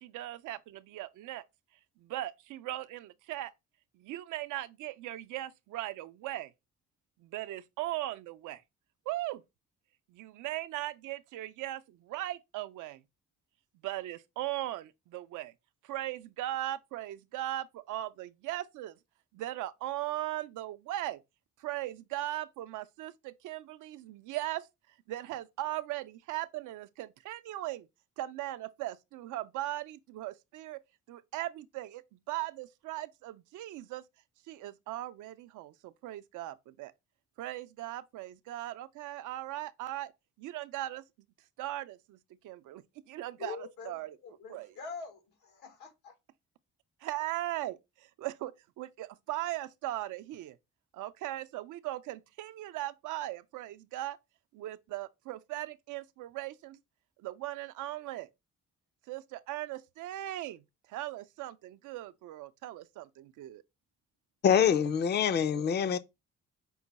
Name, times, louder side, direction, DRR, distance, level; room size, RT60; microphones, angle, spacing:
voice 1, 0.0-1.4 2.0-3.5 4.0-6.5 7.2-8.6 9.1-9.4 10.1-13.0 13.8-15.5 15.8-19.0 19.3-21.2 21.6-24.7 25.1-27.9 28.2-30.8 31.1-34.0 34.5-36.9 37.4-40.1 40.4-41.0 41.6-42.2 42.4-44.2 44.5-44.7 47.0-50.6 50.9-54.2 54.5-56.8 57.2-58.3 59.1-60.6 60.9-63.6, right 15 dB, 80° right, 0.5 m, -38 dB
voice 2, 43.4-44.0 44.2-46.1, left 5 dB, 90° left, 1.5 m, -44 dB
voice 3, 64.4-66.0, left 8 dB, 35° left, 0.4 m, -25 dB
5.5 x 2.2 x 4.0 m
cardioid pair, 90°, 30 cm